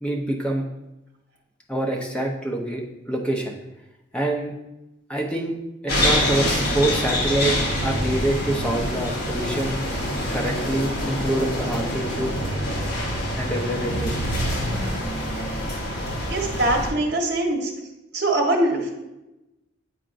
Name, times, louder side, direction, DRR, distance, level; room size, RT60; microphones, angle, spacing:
voice 1, 0.0-0.7 1.7-3.5 4.1-4.5 5.1-5.6 5.8-9.8 10.3-12.4 13.3-14.3, right 1 dB, 5° left, -1 dB, 0.8 m, -26 dB
sound 1, 5.9-16.9, left 1 dB, 55° left, 1.4 m, -25 dB
voice 2, 16.3-17.7 18.1-18.9, right 1 dB, 55° right, 1 dB, 1.2 m, -22 dB
8.9 x 4.4 x 2.5 m, 0.96 s
head